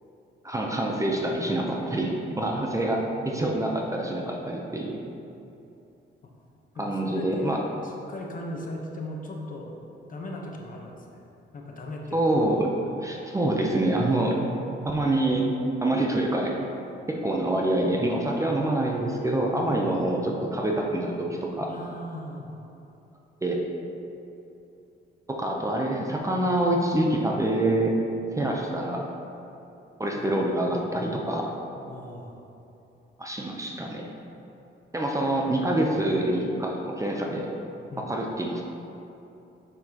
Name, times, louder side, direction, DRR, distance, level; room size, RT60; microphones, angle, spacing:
voice 1, 0.4-5.0 6.8-7.6 12.1-12.7 13.0-14.4 14.8-15.5 15.8-16.6 17.1-21.7 23.4-23.6 25.3-28.0 28.4-29.0 30.0-31.5 33.2-34.1 34.9-37.5 38.0-38.6, right 1 dB, 15° right, 0 dB, 0.7 m, -26 dB
voice 2, 6.7-9.7 10.1-11.2 11.5-12.4 19.9-20.0 21.7-22.6 30.2-30.3 31.9-32.4 37.9-38.1, left 1 dB, 45° left, 0 dB, 1.0 m, -38 dB
6.8 x 6.0 x 2.9 m, 2.9 s
cardioid pair, 90°, 20 cm